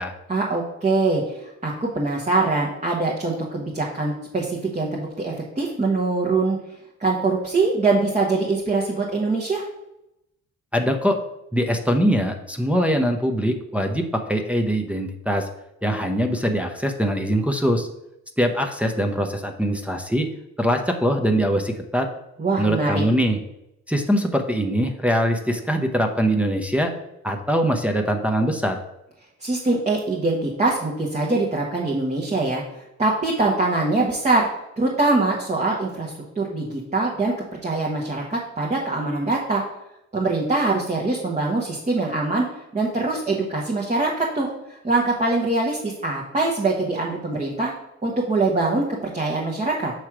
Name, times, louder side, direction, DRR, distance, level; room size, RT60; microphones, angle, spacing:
voice 1, 0.3-6.6 7.0-9.6 22.4-23.0 29.4-32.6 33.0-34.4 34.8-37.3 37.6-39.6 40.1-42.5 42.7-47.7 48.0-49.9, right 3 dB, 25° right, -2 dB, 1.1 m, -23 dB
voice 2, 10.7-11.2 11.5-15.5 15.8-17.9 18.4-20.3 20.6-22.1 22.6-23.4 23.9-26.9 27.2-28.8, equal, 5° right, 2 dB, 0.7 m, -22 dB
6.1 x 3.2 x 5.9 m, 0.86 s
cardioid pair, 90°, 30 cm